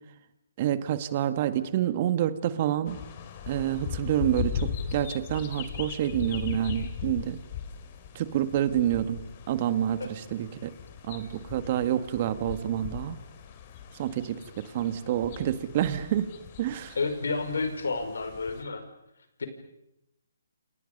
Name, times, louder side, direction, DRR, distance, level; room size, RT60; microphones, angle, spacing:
voice 1, 0.6-3.0 3.5-7.4 8.2-10.7 11.1-13.2 14.0-16.3 16.6-17.0, right 11 dB, 40° right, 12 dB, 1.7 m, -28 dB
sound 1, 2.8-18.6, left 8 dB, 35° left, 3.5 m, -39 dB
voice 2, 17.0-18.8 19.4-19.5, left 3 dB, 75° left, 7 dB, 5.5 m, -30 dB
29.0 x 28.0 x 5.5 m, 0.82 s
hypercardioid pair, 145°, 0 cm